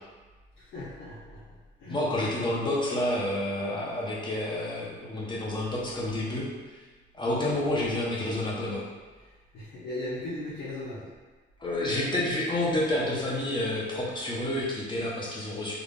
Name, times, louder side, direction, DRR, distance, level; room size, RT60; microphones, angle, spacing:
voice 1, 0.6-2.4 9.2-11.1, left 1 dB, 75° left, -9 dB, 1.0 m, -39 dB
voice 2, 1.9-6.5 7.1-8.8 11.6-15.7, left 1 dB, 25° left, -5 dB, 1.1 m, -29 dB
3.7 x 2.4 x 3.6 m, 1.3 s
cardioid pair, 90°, 20 cm